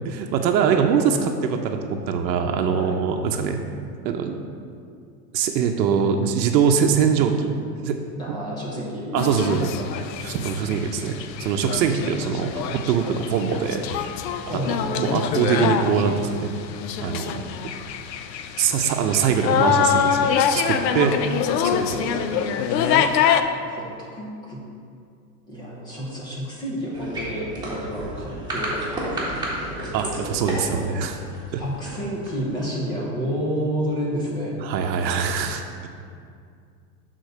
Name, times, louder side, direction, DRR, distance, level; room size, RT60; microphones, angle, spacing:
voice 1, 0.1-3.6 4.0-4.4 5.3-7.5 7.8-8.0 8.3-8.4 9.1-9.7 10.2-14.1 14.5-16.5 17.0-17.4 18.6-21.1 21.6-22.0 29.9-31.2 31.5-31.6 34.6-35.6, right 7 dB, 90° right, 4 dB, 0.7 m, -23 dB
voice 2, 8.2-9.3 9.7-9.9 14.4-15.0 20.7-21.2 21.8-22.5 23.3-24.6 25.5-31.0 31.6-34.6, equal, 10° left, -4 dB, 0.3 m, -31 dB
sound 1, 9.2-23.4, left 8 dB, 85° left, 0.6 m, -25 dB
sound 2, 26.9-32.8, right 1 dB, 10° right, 1.4 m, -32 dB
6.5 x 3.8 x 6.3 m, 2.3 s
supercardioid pair, 145°, 50 cm